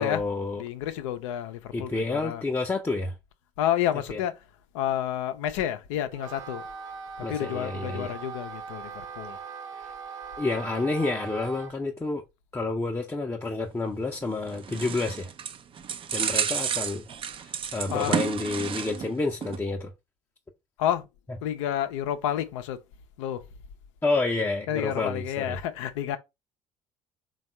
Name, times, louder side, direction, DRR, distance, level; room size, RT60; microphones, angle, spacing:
voice 1, 0.0-0.6 1.7-3.1 4.1-4.2 7.2-8.2 10.4-12.2 12.5-15.3 16.1-19.9 24.0-25.6, left 3 dB, 15° left, 0.6 m, -29 dB
voice 2, 0.6-2.4 3.6-4.3 4.7-6.6 7.3-9.4 17.9-18.1 20.8-21.1 21.4-22.8 23.2-23.4 24.7-26.2, left 11 dB, 75° left, 0.5 m, -29 dB
Wind instrument woodwind instrument, 6.1-11.8, right 5 dB, 75° right, 0.8 m, -40 dB
sound 1, 14.2-19.1 19.4-19.6, right 7 dB, 35° right, 0.4 m, -31 dB
3.5 x 2.3 x 4.2 m
hypercardioid pair, 60°, 16 cm